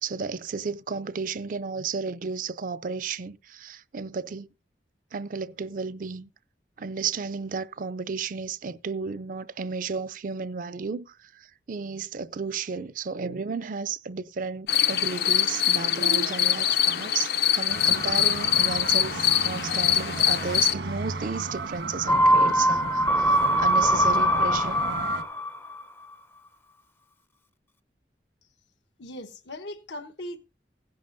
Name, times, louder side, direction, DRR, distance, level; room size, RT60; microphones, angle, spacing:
voice 1, 0.0-4.5 5.1-6.3 6.8-24.8, right 5 dB, 50° right, 0.4 m, -33 dB
sound 1, 14.7-20.7, left 10 dB, 60° left, 0.6 m, -23 dB
sound 2, 17.7-25.2, right 3 dB, 80° right, 1.4 m, -34 dB
sound 3, 22.1-25.8 26.1-26.2, equal, 15° left, 0.4 m, -22 dB
voice 2, 29.0-30.4, left 1 dB, 90° left, 1.1 m, -39 dB
16.5 x 10.5 x 2.6 m
head